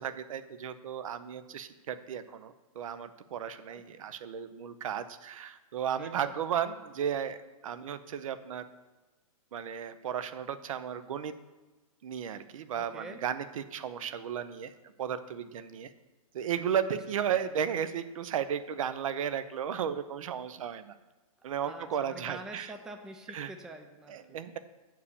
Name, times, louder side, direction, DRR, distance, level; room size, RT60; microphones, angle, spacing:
voice 1, 0.0-7.4 7.6-8.6 9.5-11.3 12.0-14.7 15.0-15.9 16.3-20.9 21.4-22.7 23.3-23.5 24.1-24.6, right 8 dB, 65° right, 12 dB, 0.6 m, -34 dB
voice 2, 6.0-6.3 12.7-13.2 17.3-17.5 21.6-24.4, right 2 dB, 5° right, 4 dB, 0.4 m, -46 dB
7.2 x 4.7 x 6.9 m, 1.2 s
hypercardioid pair, 135°, 19 cm